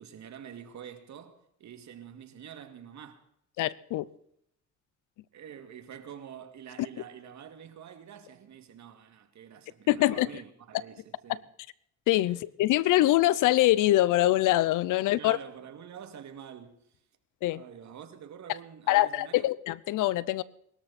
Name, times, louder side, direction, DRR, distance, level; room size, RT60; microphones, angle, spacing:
voice 1, 0.0-3.2 5.3-11.4 12.2-12.4 15.2-17.0 17.5-19.5, right 8 dB, 65° right, 2.5 m, -47 dB
voice 2, 3.6-4.1 9.9-10.3 12.1-15.4 17.4-17.6 18.9-20.4, left 15 dB, 90° left, 0.8 m, -24 dB
23.0 x 13.0 x 4.3 m
cardioid pair, 90°, 30 cm